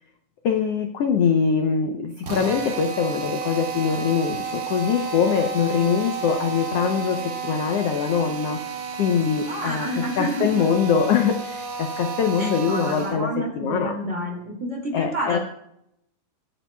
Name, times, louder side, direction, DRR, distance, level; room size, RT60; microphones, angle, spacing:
voice 1, 0.4-4.4 4.7-7.2 7.5-8.6 9.0-9.9 10.2-11.4 12.0-13.3 13.6-13.9 14.9-15.4, left 7 dB, 80° left, 4 dB, 1.4 m, -22 dB
Drill, 2.2-13.3, right 5 dB, 60° right, 1.5 m, -32 dB
voice 2, 9.5-10.7 12.4-15.4, right 1 dB, 25° right, -1 dB, 2.5 m, -29 dB
21.0 x 9.2 x 2.3 m, 0.76 s
omnidirectional pair, 3.8 m